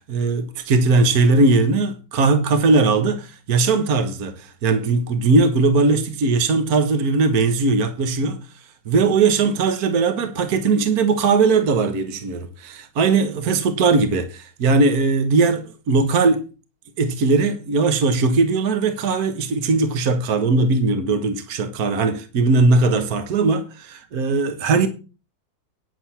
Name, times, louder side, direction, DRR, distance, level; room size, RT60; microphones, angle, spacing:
voice 1, 0.1-8.4 8.8-16.4 17.0-24.9, right 3 dB, 55° right, 1.7 m, -19 dB
9.8 x 7.8 x 5.8 m
omnidirectional pair, 2.0 m